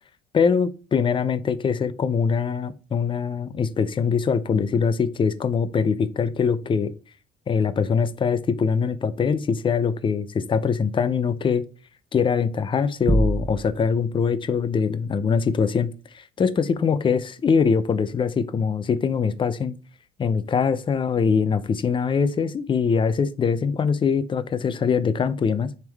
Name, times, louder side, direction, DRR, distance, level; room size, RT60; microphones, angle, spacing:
voice 1, 0.3-6.9 7.5-11.6 12.1-19.8 20.2-25.7, left 6 dB, 30° left, 0.6 m, -23 dB
sound 1, 13.1-14.0, right 1 dB, 10° right, 0.4 m, -24 dB
9.2 x 3.6 x 3.5 m
cardioid pair, 110°, 17 cm